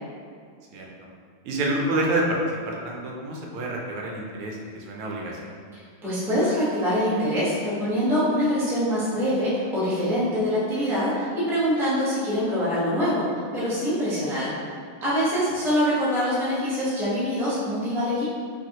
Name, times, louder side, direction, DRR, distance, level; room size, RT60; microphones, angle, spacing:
voice 1, 1.4-2.4 2.7-5.5, right 1 dB, 85° right, -1 dB, 1.6 m, -28 dB
voice 2, 6.0-14.5 15.0-18.2, equal, ahead, -10 dB, 0.7 m, -24 dB
5.1 x 3.3 x 2.9 m, 2.1 s
omnidirectional pair, 2.3 m